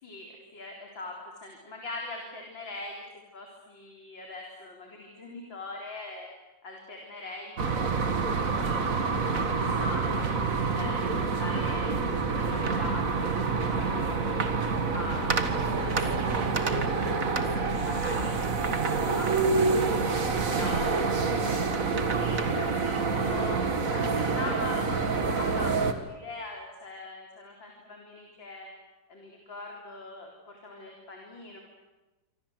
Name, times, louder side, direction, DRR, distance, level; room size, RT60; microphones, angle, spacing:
voice 1, 0.0-3.0 3.3-6.3 6.6-9.2 9.5-10.4 10.7-11.9 12.3-14.5 14.9-15.5 15.8-18.3 19.0-20.9 21.4-28.7 29.1-31.6, left 2 dB, 80° left, 0 dB, 4.7 m, -42 dB
sound 1, 7.6-25.9, right 4 dB, 45° right, 2.2 m, -27 dB
28.0 x 25.0 x 8.1 m, 1.1 s
omnidirectional pair, 2.0 m